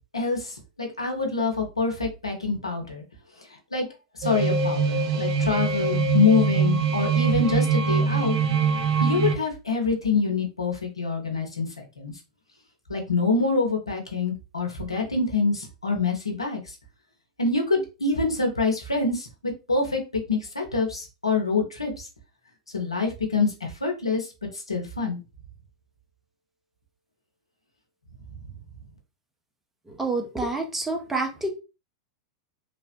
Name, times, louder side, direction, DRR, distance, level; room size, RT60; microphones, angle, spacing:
voice 1, 0.1-3.0 3.7-3.9 4.1-8.4 9.0-12.1 12.9-16.7 17.4-20.0 20.3-22.1 22.7-24.3 24.5-25.2, left 4 dB, 85° left, 2 dB, 0.7 m, -26 dB
sound 1, 4.2-9.4, right 5 dB, 55° right, 0.5 m, -23 dB
voice 2, 29.9-31.5, right 2 dB, 10° right, 3 dB, 0.7 m, -28 dB
3.1 x 2.0 x 2.8 m, 0.29 s
figure-of-eight pair, 90°, 3 cm